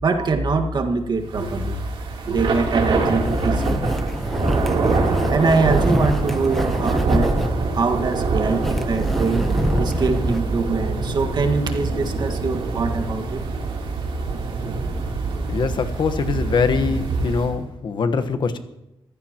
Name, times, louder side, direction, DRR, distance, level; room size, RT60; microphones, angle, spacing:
voice 1, 0.0-1.8 2.2-3.9 4.9-7.3 7.7-9.4 9.8-13.4, right 4 dB, 50° right, 4 dB, 1.7 m, -23 dB
Thunder / Rain, 1.3-17.6, right 3 dB, 70° right, 3.3 m, -24 dB
sound 1, 2.4-10.4, equal, ahead, 0.9 m, -26 dB
voice 2, 15.5-18.6, left 5 dB, 55° left, 9 dB, 1.3 m, -23 dB
27.5 x 15.5 x 3.0 m, 0.89 s
wide cardioid pair, 130°, 9 cm